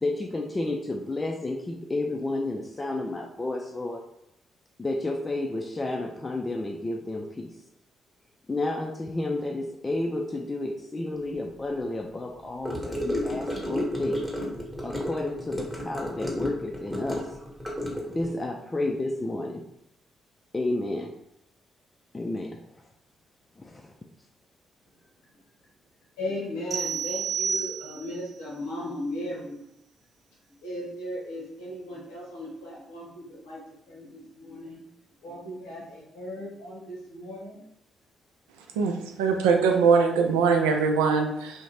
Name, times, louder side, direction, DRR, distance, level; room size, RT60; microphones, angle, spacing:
voice 1, 0.0-4.0 4.8-7.6 8.5-14.2 14.8-17.3 18.1-19.6 20.5-21.1 22.1-22.6 23.6-23.9, left 2 dB, 25° left, 1 dB, 0.3 m, -31 dB
Gurgling / Car passing by / Sink (filling or washing), 12.6-18.3, left 1 dB, 5° right, 1.0 m, -32 dB
voice 2, 26.2-29.7 30.6-33.6 33.9-34.9 35.2-37.6, left 1 dB, 80° left, -4 dB, 0.7 m, -36 dB
sound 1, 26.7-28.2, right 6 dB, 50° right, 0.8 m, -30 dB
voice 3, 38.7-41.6, right 5 dB, 80° right, 4 dB, 0.3 m, -22 dB
2.5 x 2.1 x 3.1 m, 0.78 s
hypercardioid pair, 45°, 0 cm